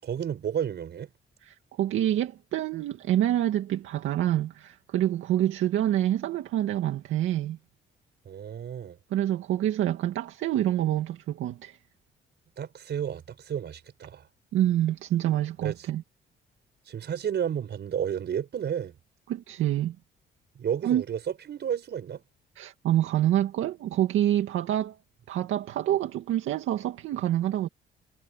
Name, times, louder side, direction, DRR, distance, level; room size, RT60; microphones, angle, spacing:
voice 1, 0.0-1.1 8.3-9.0 12.6-14.2 15.6-15.8 16.9-19.0 20.6-21.2 21.5-22.2, right 8 dB, 60° right, 5.4 m, -32 dB
voice 2, 1.4-7.6 9.1-11.8 14.5-16.0 19.3-20.0 20.8-21.0 22.6-25.0 25.3-27.7, right 12 dB, 85° right, 2.1 m, -27 dB
cardioid pair, 90°, 20 cm